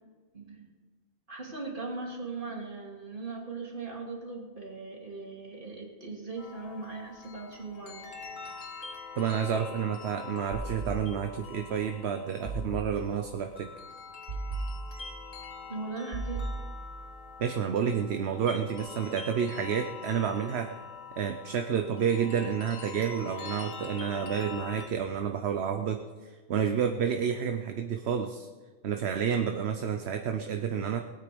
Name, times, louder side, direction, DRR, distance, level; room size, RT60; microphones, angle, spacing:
voice 1, 0.3-0.7 1.3-8.1 15.6-16.5, right 3 dB, 40° right, -1 dB, 3.0 m, -39 dB
sound 1, 6.4-24.9, left 5 dB, 70° left, 1.9 m, -45 dB
voice 2, 9.2-13.7 17.4-20.7 21.2-28.5 28.8-31.0, right 7 dB, 55° right, 6 dB, 1.0 m, -30 dB
sound 2, 10.5-11.5 12.5-13.4 14.3-15.4 16.1-17.2, right 3 dB, 90° right, 4.9 m, -37 dB
20.5 x 9.1 x 5.2 m, 1.4 s
omnidirectional pair, 1.4 m